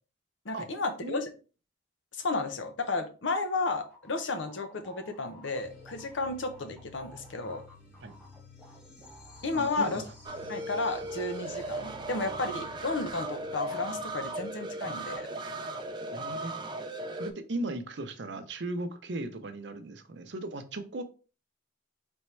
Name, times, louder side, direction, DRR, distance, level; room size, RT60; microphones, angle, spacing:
voice 1, 0.4-1.3 2.1-7.6 9.4-10.0 10.5-15.3, left 3 dB, 75° left, 7 dB, 0.7 m, -33 dB
sound 1, 3.8-10.8 11.1-12.0, equal, 5° left, 1.4 m, -55 dB
sound 2, 5.6-14.7, left 2 dB, 55° left, 2.0 m, -53 dB
voice 2, 9.5-10.0 16.1-16.5 17.2-21.0, right 2 dB, 65° right, 8 dB, 0.6 m, -37 dB
sound 3, 10.2-17.3, right 2 dB, 25° right, 0.4 m, -37 dB
4.3 x 3.5 x 3.2 m, 0.35 s
head